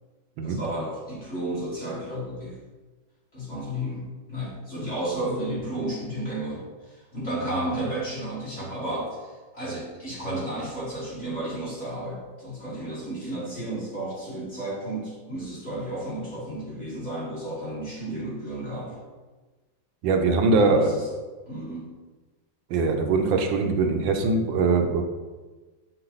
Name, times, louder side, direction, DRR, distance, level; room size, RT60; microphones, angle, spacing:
voice 1, 0.4-2.6 3.3-18.9 20.5-21.0 21.5-22.0, right 1 dB, 35° left, -8 dB, 2.2 m, -32 dB
voice 2, 20.0-20.9 22.7-25.0, right 3 dB, 80° right, 4 dB, 1.5 m, -22 dB
6.8 x 4.5 x 4.0 m, 1.3 s
omnidirectional pair, 2.1 m